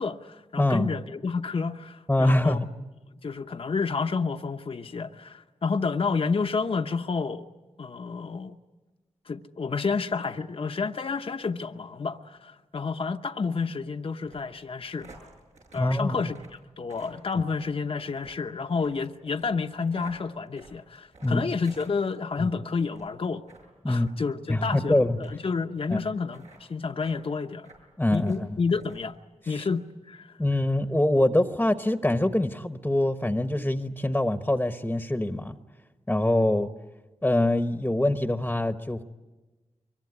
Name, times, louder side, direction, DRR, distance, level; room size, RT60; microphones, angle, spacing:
voice 1, 0.0-2.6 3.2-7.5 7.8-8.6 9.3-15.1 15.7-16.4 16.8-23.5 23.9-27.7 28.1-29.2 29.5-30.4, left 4 dB, 50° left, 0.9 m, -30 dB
voice 2, 0.6-0.9 2.1-2.6 15.7-16.2 21.2-21.5 22.4-22.5 23.8-24.1 24.5-25.2 25.9-26.0 28.0-28.5 29.4-29.6 30.4-35.6 36.1-36.7 37.2-39.0, left 1 dB, 10° left, 1.1 m, -24 dB
sound 1, 14.2-22.5 22.9-23.2 23.5-23.7 24.0-24.2 24.6-24.8 25.2-25.3 25.9-26.0 26.3-26.6 27.0-27.2 27.6-28.4 28.8-29.2 29.5-29.6, right 2 dB, 80° right, 7.6 m, -53 dB
24.0 x 23.0 x 9.8 m
cardioid pair, 70°, 12 cm